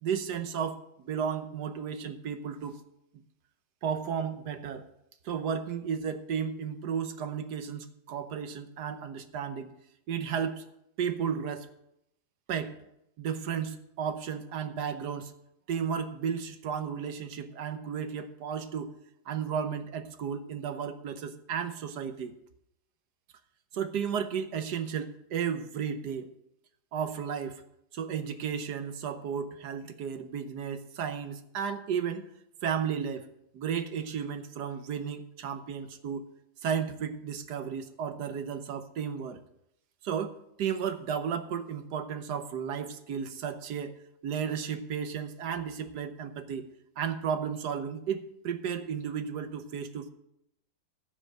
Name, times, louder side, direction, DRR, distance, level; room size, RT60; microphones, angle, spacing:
voice 1, 0.0-2.8 3.8-4.9 5.2-9.7 10.1-10.6 11.0-11.7 12.5-12.8 13.2-15.3 15.7-18.9 19.3-22.4 23.7-26.3 26.9-27.6 27.9-32.3 32.6-33.3 33.5-36.3 36.6-39.4 40.0-44.0 44.2-46.7 47.0-50.1, right 7 dB, 65° right, 9 dB, 1.4 m, -33 dB
15.0 x 5.6 x 6.5 m, 0.78 s
omnidirectional pair, 2.0 m